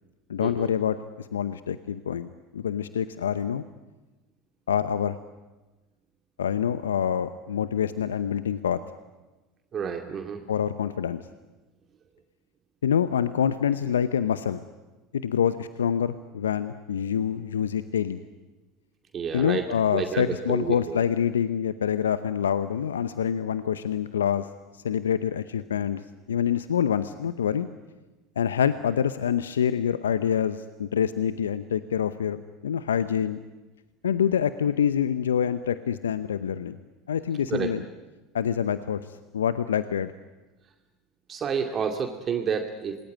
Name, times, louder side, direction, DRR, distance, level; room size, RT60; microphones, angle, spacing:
voice 1, 0.3-2.3 2.5-3.6 4.7-5.2 6.4-8.8 10.5-11.2 12.8-14.6 15.1-18.2 19.3-24.5 24.7-26.0 26.3-27.7 28.4-33.4 34.0-36.8 37.1-37.8 38.3-39.0 39.3-40.1, left 8 dB, 80° left, 13 dB, 0.8 m, -26 dB
voice 2, 9.7-10.4 19.1-19.7 19.9-21.0 37.5-37.7 38.7-38.8 41.3-43.0, right 6 dB, 35° right, 4 dB, 2.4 m, -29 dB
27.0 x 20.0 x 9.6 m, 1.2 s
figure-of-eight pair, 75°, 0 cm